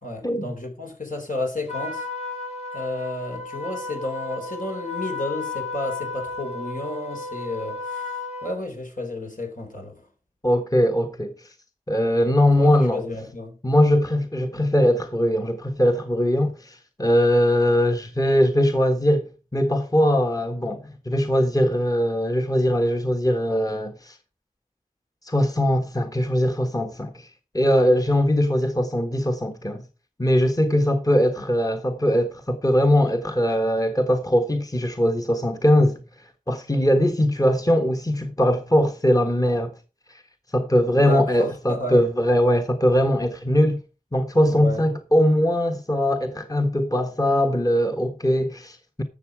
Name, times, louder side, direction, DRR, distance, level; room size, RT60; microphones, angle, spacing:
voice 1, 0.0-2.1 2.7-10.1 12.5-13.6 40.9-42.1 44.5-44.9, left 2 dB, 70° left, 3.6 m, -32 dB
Trumpet, 1.7-8.6, left 3 dB, 55° left, 3.8 m, -33 dB
voice 2, 10.4-11.3 11.9-13.0 13.6-24.2 25.2-27.3 27.5-29.8 30.2-36.0 36.5-39.8 40.5-43.8 44.1-49.0, equal, 25° left, 1.3 m, -21 dB
12.5 x 7.2 x 4.8 m
wide cardioid pair, 45°, 14 cm